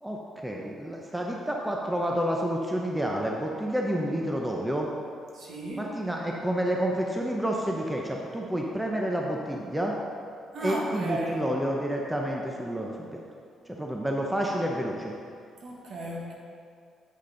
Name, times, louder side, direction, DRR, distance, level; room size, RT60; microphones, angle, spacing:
voice 1, 0.0-4.9 5.7-9.9 10.6-13.2 13.7-15.2, equal, 5° right, -1 dB, 0.7 m, -29 dB
voice 2, 5.3-5.8 10.5-11.4 15.6-16.3, right 2 dB, 60° right, -3 dB, 1.7 m, -34 dB
8.4 x 5.3 x 3.9 m, 2.3 s
cardioid pair, 90°, 0 cm